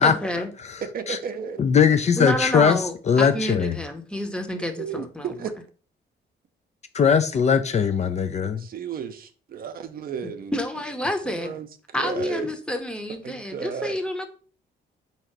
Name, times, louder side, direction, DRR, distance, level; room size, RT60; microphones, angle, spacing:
voice 1, 0.0-0.5 2.2-5.3 10.5-11.5 11.9-14.3, left 1 dB, 5° left, 0.8 m, -29 dB
voice 2, 0.8-1.6 4.6-5.6 8.6-10.5 11.2-11.7 12.0-12.5 13.2-14.0, right 6 dB, 55° right, 0.6 m, -33 dB
voice 3, 1.6-3.8 6.9-8.7, left 6 dB, 40° left, 0.4 m, -20 dB
3.8 x 2.9 x 4.5 m
cardioid pair, 105°, 18 cm